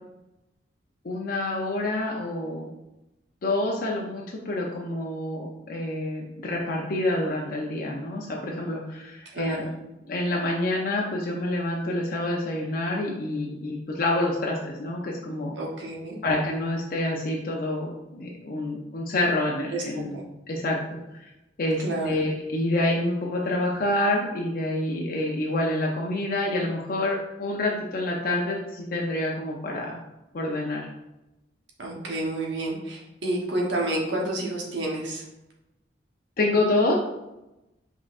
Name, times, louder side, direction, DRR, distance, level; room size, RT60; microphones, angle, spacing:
voice 1, 1.0-2.7 3.4-9.6 10.1-15.6 16.2-20.2 20.5-21.3 21.6-30.0 30.3-30.9 36.4-36.9, left 1 dB, 55° left, -2 dB, 0.5 m, -27 dB
voice 2, 9.3-9.7 15.5-16.2 19.7-20.2 21.8-22.2 31.8-35.2, right 1 dB, 85° right, -2 dB, 1.0 m, -30 dB
5.2 x 3.7 x 2.5 m, 0.95 s
head